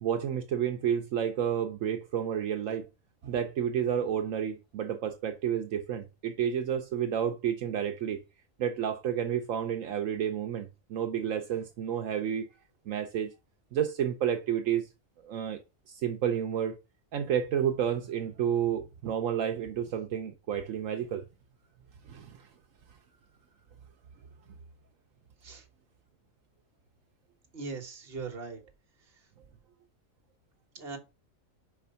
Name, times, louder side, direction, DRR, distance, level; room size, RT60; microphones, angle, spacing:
voice 1, 0.0-2.8 3.2-8.2 8.6-12.5 12.9-13.3 13.7-14.9 15.2-15.6 15.9-16.8 17.1-21.2 22.1-22.5, right 9 dB, 75° right, 1.1 m, -30 dB
voice 2, 27.5-28.6 30.7-31.0, right 4 dB, 50° right, 1.5 m, -39 dB
5.1 x 4.6 x 5.4 m
omnidirectional pair, 1.4 m